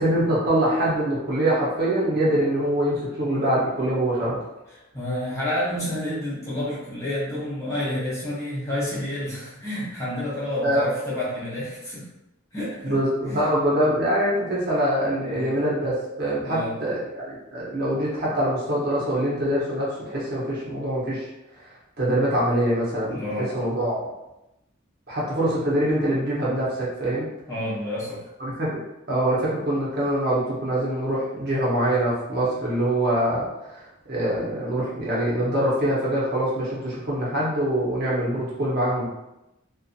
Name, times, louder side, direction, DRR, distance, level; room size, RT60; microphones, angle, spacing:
voice 1, 0.0-4.4 10.6-10.8 12.8-21.3 22.0-24.0 25.1-27.3 28.4-28.8 29.1-33.5 34.1-39.1, right 1 dB, 50° right, -7 dB, 0.9 m, -24 dB
voice 2, 4.7-12.0 12.5-13.0 13.3-13.5 13.8-14.0 15.1-15.6 16.4-16.8 23.1-23.5 27.5-28.2, left 1 dB, 15° left, -9 dB, 0.8 m, -30 dB
2.7 x 2.5 x 2.4 m, 0.91 s
head